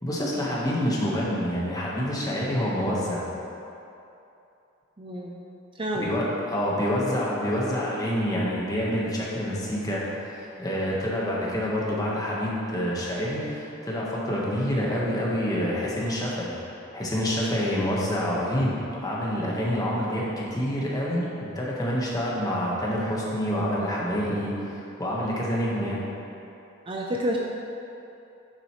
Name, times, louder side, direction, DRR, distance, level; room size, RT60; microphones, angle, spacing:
voice 1, 0.0-3.3 5.9-16.6 16.9-26.0, equal, 20° left, -5 dB, 1.4 m, -27 dB
voice 2, 5.0-5.3 5.8-6.2 25.7-26.0 26.9-27.4, equal, 25° right, -1 dB, 0.5 m, -30 dB
9.4 x 7.4 x 3.2 m, 2.8 s
head